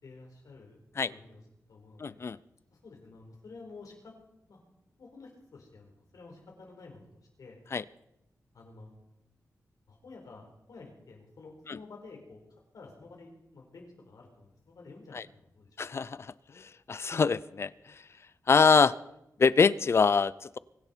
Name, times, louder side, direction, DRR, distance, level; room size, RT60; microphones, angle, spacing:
voice 1, 0.0-0.8 1.1-1.4 1.7-2.2 2.7-4.2 4.5-4.6 5.0-7.1 7.4-7.6 8.5-9.0 9.9-12.4 12.7-15.7, left 3 dB, 85° left, 1 dB, 4.4 m, -50 dB
voice 2, 2.0-2.4 7.7-7.8 11.7-11.8 15.1-15.2 15.8-17.7 18.5-19.0 19.4-20.6, left 5 dB, 45° left, 19 dB, 0.4 m, -25 dB
24.0 x 10.5 x 4.5 m, 0.86 s
wide cardioid pair, 145°, 6 cm